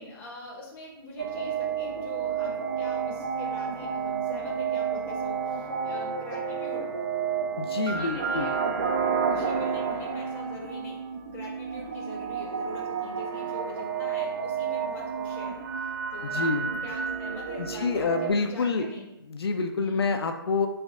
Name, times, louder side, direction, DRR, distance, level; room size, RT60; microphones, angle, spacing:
voice 1, 0.0-6.9 7.7-11.0 11.3-16.6 16.8-19.1 19.8-20.1, left 1 dB, 15° left, -2 dB, 0.7 m, -43 dB
sound 1, 1.2-18.3, right 6 dB, 45° right, 0.4 m, -30 dB
voice 2, 7.6-8.5 16.3-16.7 17.6-18.9 19.3-20.7, left 4 dB, 75° left, 6 dB, 0.4 m, -27 dB
3.2 x 2.5 x 3.6 m, 0.88 s
hypercardioid pair, 140°, 13 cm